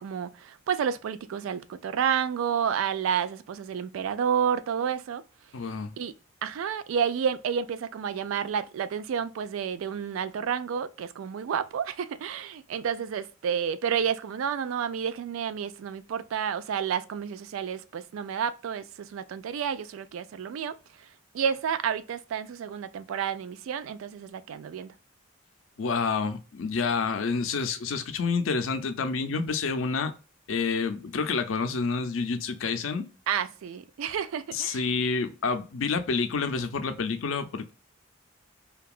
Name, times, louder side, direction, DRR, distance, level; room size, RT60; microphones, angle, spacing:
voice 1, 0.0-5.2 6.0-6.1 6.4-20.8 21.3-24.9 33.3-34.8, right 7 dB, 80° right, 0.3 m, -30 dB
voice 2, 5.5-5.9 25.8-30.1 30.5-33.1 34.5-37.7, left 4 dB, 75° left, 0.5 m, -28 dB
2.7 x 2.3 x 2.3 m
head